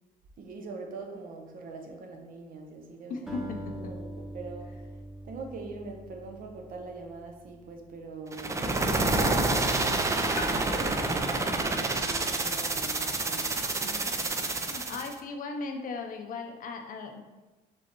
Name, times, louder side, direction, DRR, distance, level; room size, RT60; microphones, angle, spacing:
voice 1, 0.4-14.3, right 3 dB, 55° right, 3 dB, 0.8 m, -43 dB
voice 2, 3.1-3.7 14.7-17.2, left 4 dB, 55° left, 4 dB, 0.6 m, -37 dB
Acoustic guitar, 3.3-7.7, right 1 dB, ahead, 0.9 m, -43 dB
sound 1, 8.3-15.1, right 2 dB, 20° right, 0.4 m, -28 dB
sound 2, 10.3-13.7, left 3 dB, 75° left, 0.9 m, -47 dB
5.1 x 3.2 x 2.9 m, 1.2 s
cardioid pair, 110°, 17 cm